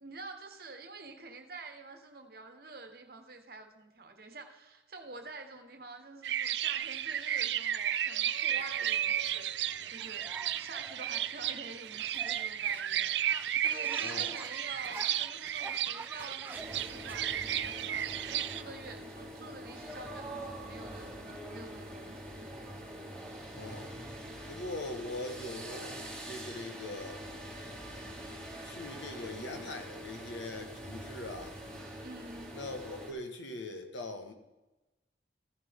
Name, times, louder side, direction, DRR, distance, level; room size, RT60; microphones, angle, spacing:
voice 1, 0.0-22.5 32.0-32.6, right 3 dB, 55° right, 6 dB, 1.2 m, -48 dB
sound 1, 6.2-18.6, right 10 dB, 70° right, 0.4 m, -33 dB
sound 2, 8.5-18.2, right 2 dB, 10° right, 0.5 m, -49 dB
voice 2, 14.0-14.4 23.5-23.9 24.5-27.2 28.6-31.6 32.5-34.3, left 2 dB, 85° left, 5 dB, 1.6 m, -41 dB
sound 3, 16.5-33.1, right 1 dB, 5° left, 3.4 m, -44 dB
14.5 x 7.3 x 3.7 m, 1.1 s
head